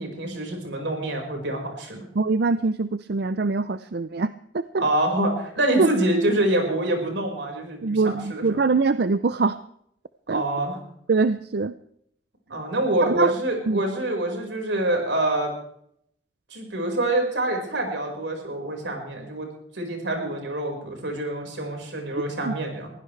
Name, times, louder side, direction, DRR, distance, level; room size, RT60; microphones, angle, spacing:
voice 1, 0.0-2.0 4.8-8.6 10.3-10.8 12.5-15.5 16.5-19.5 19.7-22.9, right 1 dB, 85° right, 2 dB, 5.1 m, -26 dB
voice 2, 2.2-4.8 5.8-5.9 7.8-9.6 10.3-10.4 11.1-11.7 13.1-13.3 13.7-13.8 22.5-22.6, right 3 dB, 60° right, 13 dB, 0.5 m, -23 dB
22.5 x 15.5 x 3.3 m, 0.71 s
head